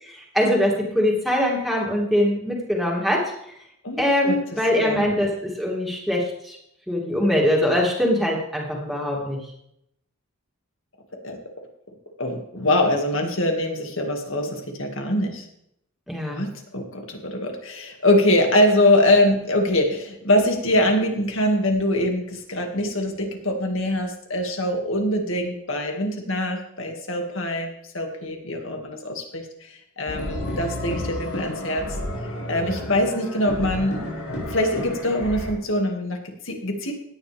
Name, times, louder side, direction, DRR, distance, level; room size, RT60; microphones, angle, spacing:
voice 1, 0.0-3.3 4.0-6.6 6.9-9.4 16.1-16.4, left 1 dB, ahead, -3 dB, 2.8 m, -22 dB
voice 2, 3.8-4.4 4.8-5.1 11.2-11.4 12.2-15.5 16.3-31.9 32.5-34.0 34.4-36.9, left 1 dB, 60° left, 3 dB, 2.3 m, -23 dB
sound 1, 30.1-35.5, left 1 dB, 85° left, 5.5 m, -31 dB
17.0 x 10.0 x 3.6 m, 0.75 s
head